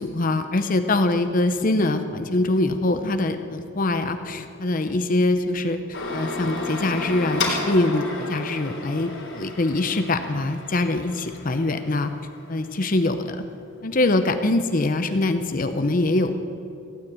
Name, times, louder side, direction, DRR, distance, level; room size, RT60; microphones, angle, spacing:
voice 1, 0.0-5.8 6.1-12.1 12.5-13.4 13.8-16.4, left 2 dB, 40° left, 8 dB, 0.6 m, -23 dB
sound 1, 5.9-12.6, left 2 dB, 60° left, 3.8 m, -32 dB
16.5 x 9.6 x 8.7 m, 2.8 s
head